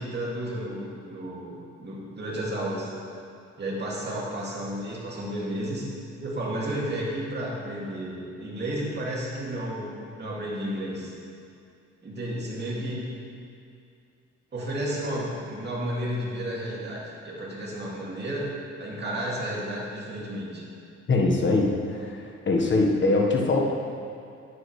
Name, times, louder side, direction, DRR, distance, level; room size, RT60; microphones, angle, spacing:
voice 1, 0.0-2.9 3.6-5.9 6.2-11.1 12.0-13.1 14.5-18.5 18.8-20.6, right 1 dB, 35° right, -4 dB, 2.4 m, -32 dB
voice 2, 21.1-23.7, left 2 dB, 40° left, 0 dB, 1.4 m, -23 dB
9.8 x 9.7 x 3.3 m, 2.5 s
cardioid pair, 90°, 30 cm